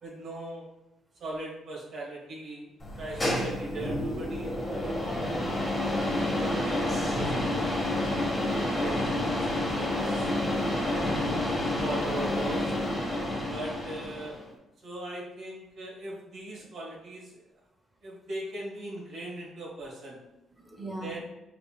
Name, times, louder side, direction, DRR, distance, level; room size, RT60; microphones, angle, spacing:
voice 1, 0.0-0.7 1.2-2.7 3.0-5.5 6.1-10.3 10.6-11.2 11.8-12.7 13.5-14.4 14.8-17.4 18.0-20.2 21.0-21.2, right 2 dB, 65° right, -5 dB, 1.4 m, -40 dB
sound 1, 2.8-14.4, left 1 dB, 25° left, 1.2 m, -29 dB
voice 2, 20.6-21.2, right 1 dB, 20° right, 2 dB, 0.7 m, -43 dB
5.1 x 2.6 x 2.3 m, 0.96 s
cardioid pair, 90°, 0 cm